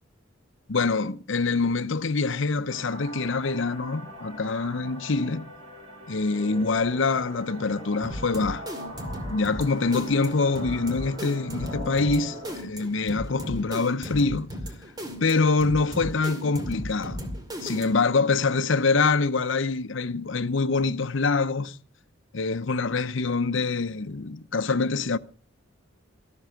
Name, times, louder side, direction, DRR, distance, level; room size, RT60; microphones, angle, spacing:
voice 1, 0.7-5.5 6.1-8.7 9.3-14.5 15.2-17.2 17.6-21.8 22.3-25.2, left 4 dB, 65° left, 0.7 m, -25 dB
sound 1, 2.7-12.6, equal, 85° right, 6.7 m, -42 dB
sound 2, 8.0-18.1, equal, 20° right, 2.4 m, -36 dB
13.5 x 13.0 x 5.8 m
head